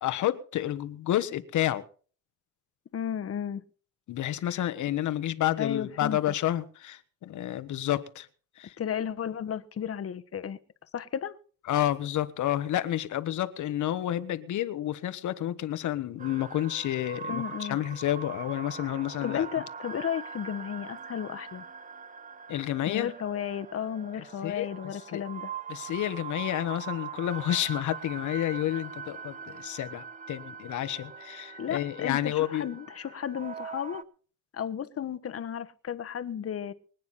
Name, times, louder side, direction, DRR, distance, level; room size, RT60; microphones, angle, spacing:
voice 1, 0.0-1.8 4.1-8.3 8.6-8.8 11.7-19.5 22.5-23.1 24.1-25.2 25.7-32.7, left 12 dB, 75° left, 1.3 m, -30 dB
voice 2, 2.9-3.6 4.5-4.6 5.6-6.2 8.8-10.6 10.9-11.3 17.3-17.8 19.2-21.6 22.9-25.5 31.6-34.0 34.5-36.7, left 8 dB, 50° left, 1.4 m, -33 dB
sound 1, 16.2-34.0, right 6 dB, 25° right, 1.0 m, -42 dB
24.5 x 9.5 x 4.2 m
cardioid pair, 90°, 30 cm